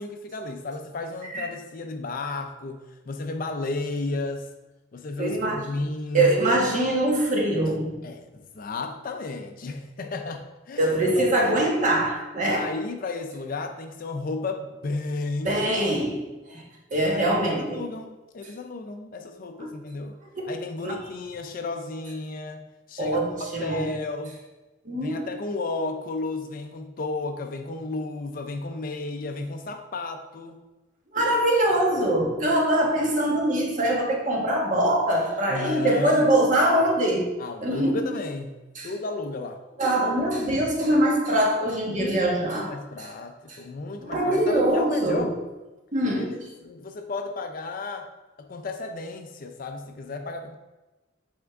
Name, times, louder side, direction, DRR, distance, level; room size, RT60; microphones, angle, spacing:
voice 1, 0.0-4.5 4.9-6.4 8.0-11.6 12.5-15.7 17.0-20.2 20.5-23.3 23.6-24.4 24.9-30.6 32.5-32.9 35.5-36.3 37.4-38.5 38.8-39.6 41.9-45.3 46.1-48.1 48.4-50.6, left 3 dB, 45° left, 5 dB, 0.4 m, -33 dB
voice 2, 5.2-5.6 6.1-7.9 10.8-12.7 15.4-16.6 16.9-17.8 19.6-19.7 20.3-20.5 20.8-21.0 23.0-23.9 24.8-25.2 31.1-37.3 37.6-38.0 38.7-38.9 39.8-43.1 43.5-43.6 44.0-45.3 45.9-46.3, right 1 dB, 40° right, -1 dB, 1.2 m, -23 dB
8.7 x 3.5 x 3.5 m, 1.1 s
head